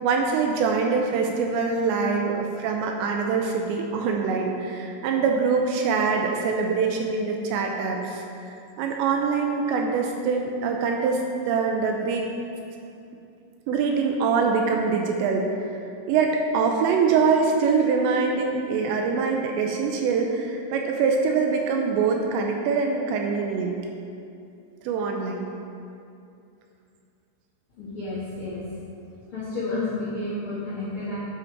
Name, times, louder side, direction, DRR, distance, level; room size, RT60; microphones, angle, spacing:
voice 1, 0.0-8.2 8.8-11.2 11.5-12.3 13.7-15.5 16.1-23.8 24.8-25.5, right 5 dB, 80° right, 2 dB, 2.8 m, -24 dB
voice 2, 27.8-28.7 29.3-31.2, left 2 dB, 65° left, -10 dB, 1.3 m, -31 dB
8.6 x 7.5 x 4.6 m, 2.6 s
omnidirectional pair, 5.4 m